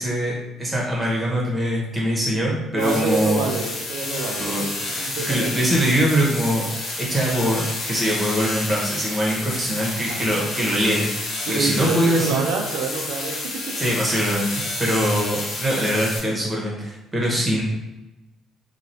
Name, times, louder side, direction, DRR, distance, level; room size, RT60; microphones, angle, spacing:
voice 1, 0.0-3.4 4.4-6.7 7.0-12.4 13.7-17.6, equal, 15° right, -3 dB, 1.0 m, -23 dB
voice 2, 2.7-4.4 5.0-5.7 9.8-10.3 11.4-13.4 13.7-13.8, right 4 dB, 90° right, 3 dB, 0.5 m, -27 dB
sound 1, 2.8-16.2, left 2 dB, 70° left, 0.9 m, -30 dB
3.0 x 2.3 x 2.7 m, 1.0 s
cardioid pair, 100°, 0 cm